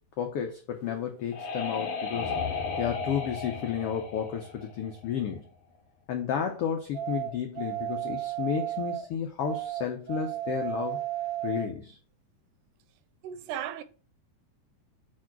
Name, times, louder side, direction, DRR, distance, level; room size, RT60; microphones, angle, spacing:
voice 1, 0.2-2.3 2.8-5.5 6.1-11.0 11.4-12.0, left 8 dB, 90° left, 1.3 m, -32 dB
sound 1, 0.8-5.3, left 5 dB, 65° left, 1.2 m, -35 dB
sound 2, 6.9-9.1 9.4-11.7, right 12 dB, 65° right, 1.6 m, -33 dB
voice 2, 13.2-13.8, right 10 dB, 85° right, 2.0 m, -35 dB
4.9 x 4.7 x 5.9 m
omnidirectional pair, 3.6 m